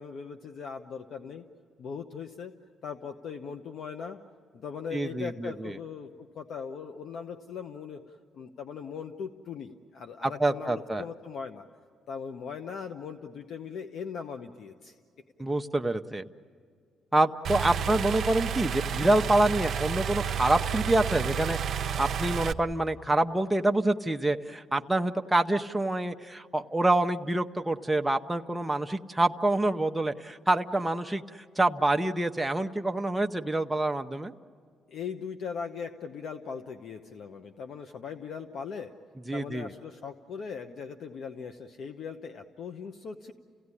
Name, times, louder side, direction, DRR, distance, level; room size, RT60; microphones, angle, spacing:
voice 1, 0.0-1.4 1.8-2.5 2.8-4.2 4.5-11.7 12.1-14.9 17.8-17.9 34.9-38.9 39.3-43.3, left 6 dB, 65° left, 6 dB, 0.9 m, -39 dB
voice 2, 4.9-5.7 10.2-11.0 15.4-16.3 17.1-34.3 39.3-39.7, right 2 dB, 10° right, 5 dB, 0.8 m, -27 dB
sound 1, 17.4-22.5, right 7 dB, 60° right, 0.7 m, -31 dB
29.5 x 17.0 x 9.8 m, 2.1 s
cardioid pair, 90°, 0 cm